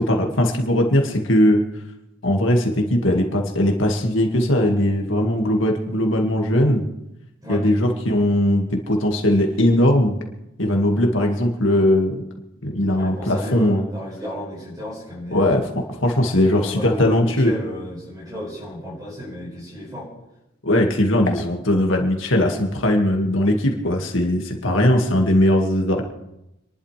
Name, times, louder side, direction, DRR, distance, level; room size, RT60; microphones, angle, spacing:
voice 1, 0.0-1.6 2.2-6.8 7.5-10.2 10.6-12.2 12.6-13.8 15.3-15.7 16.0-17.5 20.6-26.0, left 1 dB, 90° left, 2 dB, 2.1 m, -19 dB
voice 2, 13.0-15.6 16.3-20.1, equal, 20° right, -8 dB, 6.2 m, -33 dB
29.5 x 11.5 x 3.4 m, 0.88 s
head